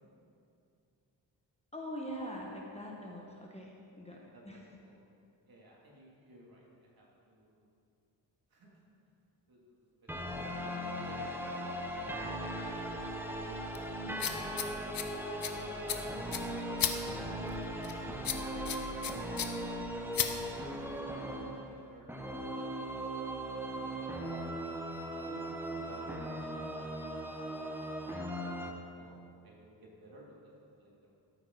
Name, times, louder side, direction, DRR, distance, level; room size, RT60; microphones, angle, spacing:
voice 1, 1.7-4.6, equal, 15° left, -2 dB, 1.3 m, -43 dB
voice 2, 4.1-5.0 5.4-7.7 8.5-9.1 9.5-10.4 10.8-14.4 15.1-16.0 16.3-17.0 21.0-23.0 23.4-24.5 25.1-27.2 27.5-29.2 29.4-31.1, equal, 50° right, -3 dB, 3.0 m, -57 dB
sound 1, 10.1-28.7, right 1 dB, 5° right, 1.0 m, -38 dB
sound 2, 12.6-21.0, left 8 dB, 50° left, 0.9 m, -38 dB
13.5 x 8.8 x 4.1 m, 2.5 s
cardioid pair, 95°, 45 cm